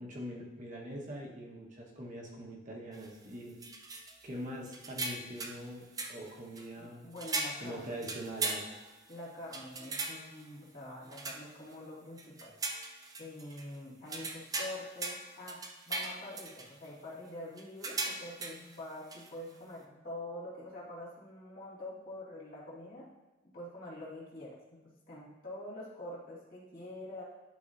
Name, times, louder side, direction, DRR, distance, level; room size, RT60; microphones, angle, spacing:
voice 1, 0.0-3.5 4.2-5.8 6.1-7.1 7.6-8.6, equal, 40° right, -2 dB, 1.2 m, -43 dB
sound 1, 2.9-3.1 3.6-4.3 4.7-5.6 6.0-6.7 7.2-9.1 9.5-10.4 11.1-11.7 12.2-13.6 14.1-16.9 17.6-18.8 19.1-19.3, right 3 dB, 20° right, 0.5 m, -39 dB
voice 2, 6.8-8.0 9.1-12.6 13.2-23.1 23.4-27.2, left 1 dB, 50° left, -7 dB, 2.2 m, -46 dB
11.5 x 4.1 x 2.6 m, 1.1 s
head